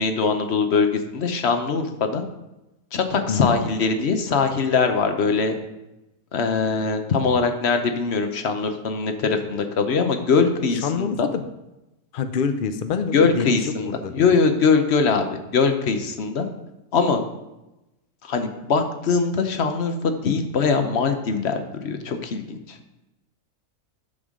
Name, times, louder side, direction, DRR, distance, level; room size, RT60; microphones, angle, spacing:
voice 1, 0.0-2.2 2.9-5.5 6.3-11.3 13.1-15.3 15.5-16.5 16.9-17.2 18.2-22.8, left 5 dB, 50° left, 7 dB, 1.0 m, -22 dB
voice 2, 10.7-11.4 12.1-14.3, left 6 dB, 75° left, 8 dB, 0.4 m, -26 dB
10.0 x 6.8 x 3.7 m, 0.96 s
omnidirectional pair, 1.6 m